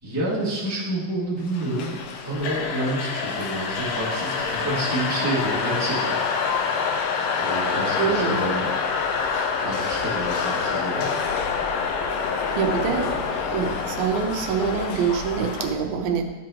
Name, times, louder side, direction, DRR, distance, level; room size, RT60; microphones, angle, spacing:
voice 1, 0.0-2.0 2.2-6.2 7.4-8.7 9.6-11.1 12.9-13.1 13.6-13.7, right 1 dB, 10° right, -8 dB, 1.2 m, -29 dB
sound 1, 1.5-15.7, left 5 dB, 80° left, 2.3 m, -26 dB
voice 2, 7.6-8.7 12.5-13.1 13.5-16.3, right 6 dB, 85° right, 4 dB, 2.5 m, -25 dB
12.0 x 6.1 x 3.0 m, 1.2 s
omnidirectional pair, 4.2 m